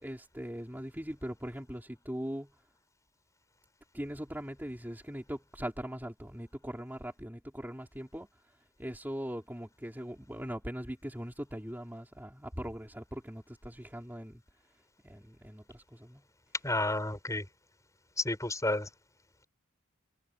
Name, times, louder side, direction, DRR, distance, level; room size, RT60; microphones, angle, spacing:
voice 1, 0.0-2.5 3.9-8.3 8.8-14.4 15.0-16.2, equal, 10° right, 4.1 m, -40 dB
voice 2, 16.6-17.4 18.2-18.9, left 2 dB, 15° left, 7.5 m, -31 dB
head